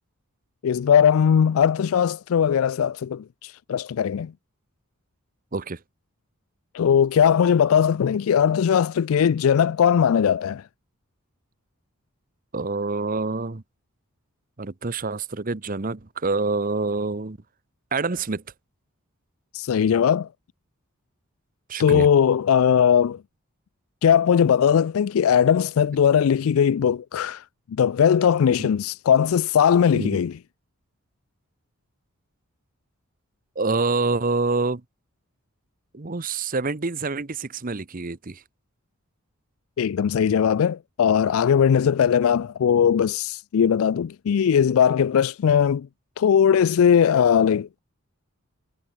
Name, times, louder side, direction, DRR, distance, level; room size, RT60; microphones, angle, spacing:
voice 1, 0.6-4.3 6.7-10.6 19.5-20.3 21.8-23.2 24.0-27.4 27.8-30.3 39.8-45.9 46.2-47.8, left 8 dB, 80° left, 0.4 m, -19 dB
voice 2, 12.5-13.6 14.6-17.4 17.9-18.4 21.7-22.1 29.9-30.2 33.6-34.8 35.9-38.4, right 3 dB, 40° right, 0.9 m, -26 dB
head